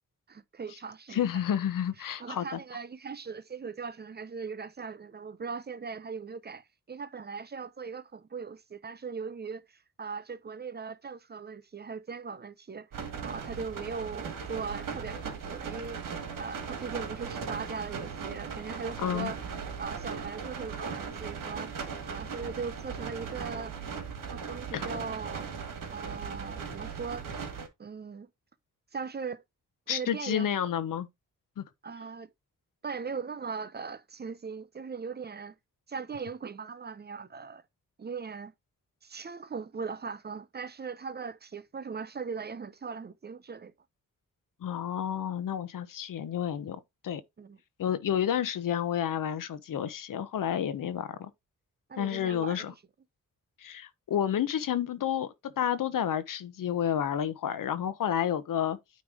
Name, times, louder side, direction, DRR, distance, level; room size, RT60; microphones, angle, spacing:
voice 1, 0.3-1.3 2.0-12.9 13.2-16.0 16.4-19.4 19.8-21.7 22.0-23.7 24.2-25.5 25.9-27.3 27.8-28.3 28.9-29.4 29.9-30.5 31.8-32.3 32.8-35.6 35.9-37.6 38.0-38.5 39.0-43.7 47.4-47.6 51.9-52.7, right 5 dB, 30° right, 0.6 m, -39 dB
voice 2, 1.1-2.6 19.0-19.3 24.7-24.9 29.9-31.1 31.6-31.7 44.6-47.2 47.8-51.3 52.0-52.7 53.6-58.8, left 9 dB, 85° left, 1.0 m, -30 dB
sound 1, 12.9-27.7, right 6 dB, 85° right, 1.7 m, -38 dB
9.4 x 3.3 x 4.9 m
wide cardioid pair, 120°, 32 cm